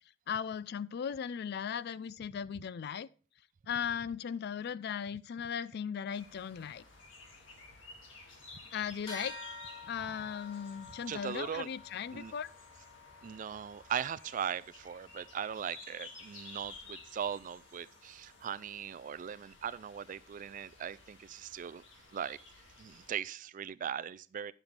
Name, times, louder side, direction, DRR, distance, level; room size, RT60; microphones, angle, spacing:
voice 1, 0.3-3.1 3.7-6.8 8.7-9.4 9.9-12.5, left 7 dB, 60° left, 0.4 m, -37 dB
sound 1, 6.1-23.1, left 3 dB, 80° left, 1.9 m, -54 dB
sound 2, 9.1-18.9, left 3 dB, 30° left, 4.5 m, -52 dB
voice 2, 11.1-11.7 12.1-12.3 13.2-21.8 22.1-22.4 22.8-24.5, right 8 dB, 45° right, 0.3 m, -39 dB
10.5 x 7.2 x 3.3 m
head